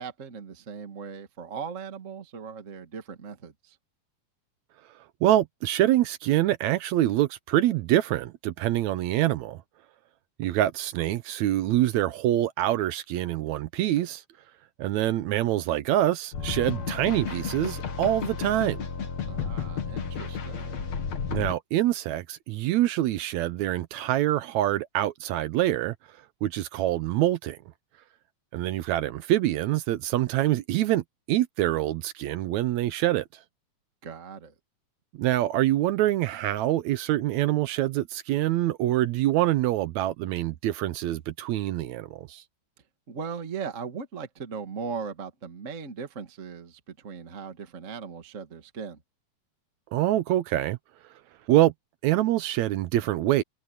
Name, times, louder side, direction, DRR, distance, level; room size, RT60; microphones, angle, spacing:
voice 1, 0.0-3.8 19.3-20.9 34.0-34.5 43.1-49.0, right 6 dB, 30° right, 1.7 m, -38 dB
voice 2, 5.2-9.6 10.4-14.2 14.8-18.8 21.3-25.9 26.4-27.6 28.5-33.3 35.2-42.4 49.9-50.8 51.5-51.7 52.0-53.4, right 14 dB, 80° right, 1.9 m, -25 dB
sound 1, 16.3-21.5, left 6 dB, 65° left, 3.2 m, -32 dB
omnidirectional pair, 3.4 m